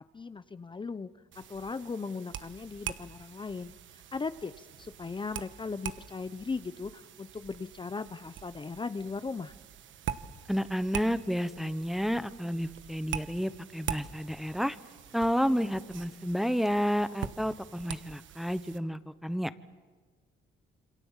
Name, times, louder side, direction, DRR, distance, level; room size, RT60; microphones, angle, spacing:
voice 1, 0.1-1.1 1.3-9.5, left 4 dB, 25° left, 12 dB, 0.8 m, -38 dB
sound 1, 1.3-18.8, right 10 dB, 75° right, 1.3 m, -43 dB
voice 2, 10.5-14.8 15.1-19.5, equal, ahead, 13 dB, 1.0 m, -30 dB
27.5 x 25.0 x 7.4 m, 1.4 s
cardioid pair, 90°, 20 cm